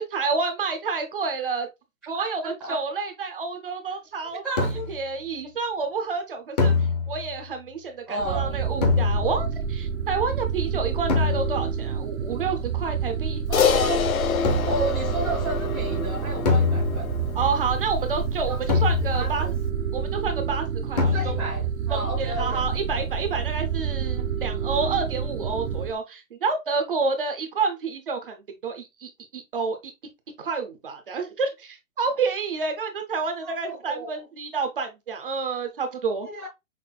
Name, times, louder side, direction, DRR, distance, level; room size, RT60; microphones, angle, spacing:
voice 1, 0.0-1.7 2.1-4.4 4.9-6.7 7.1-13.4 17.4-19.5 19.9-21.4 21.9-29.9 30.4-36.3, right 4 dB, 40° right, 0.7 m, -29 dB
voice 2, 2.2-2.8 4.4-4.9 8.1-8.6 13.5-14.1 14.6-17.3 18.5-18.6 19.1-19.5 20.2-20.4 21.0-22.6 22.9-23.1 33.4-34.2 36.2-36.5, right 1 dB, ahead, 0.7 m, -32 dB
sound 1, 4.6-5.1 6.6-7.4 8.8-9.6 11.1-11.8 14.4-15.0 16.5-17.3 18.7-19.5 21.0-21.7, left 4 dB, 30° left, 0.8 m, -24 dB
sound 2, 8.2-25.9, right 7 dB, 80° right, 0.7 m, -29 dB
Crash cymbal, 13.5-18.1, left 9 dB, 90° left, 0.9 m, -27 dB
5.9 x 2.5 x 2.2 m
hypercardioid pair, 175°, 41 cm